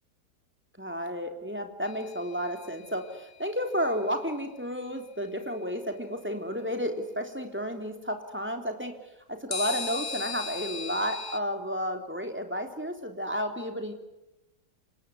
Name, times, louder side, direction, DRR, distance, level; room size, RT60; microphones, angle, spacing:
voice 1, 0.7-8.9 9.3-13.9, equal, 5° right, 4 dB, 3.5 m, -32 dB
sound 1, 1.9-3.1 9.5-11.4, left 5 dB, 45° left, 1.5 m, -37 dB
27.0 x 20.0 x 9.8 m, 0.97 s
omnidirectional pair, 1.8 m